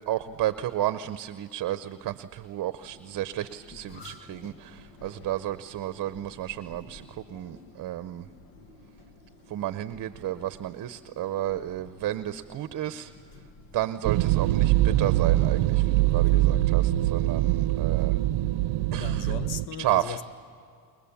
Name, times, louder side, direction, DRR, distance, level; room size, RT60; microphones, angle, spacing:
voice 1, 0.1-8.3 9.5-13.1 13.7-18.2 18.9-19.3 19.8-20.2, right 13 dB, 45° right, 0.8 m, -32 dB
sound 1, 2.8-18.3, left 3 dB, 75° left, 1.9 m, -51 dB
sound 2, 14.0-19.7, right 16 dB, 80° right, 0.7 m, -23 dB
voice 2, 16.1-16.5 18.9-20.2, left 8 dB, 60° left, 1.1 m, -37 dB
29.0 x 21.5 x 7.1 m
cardioid pair, 115°, 44 cm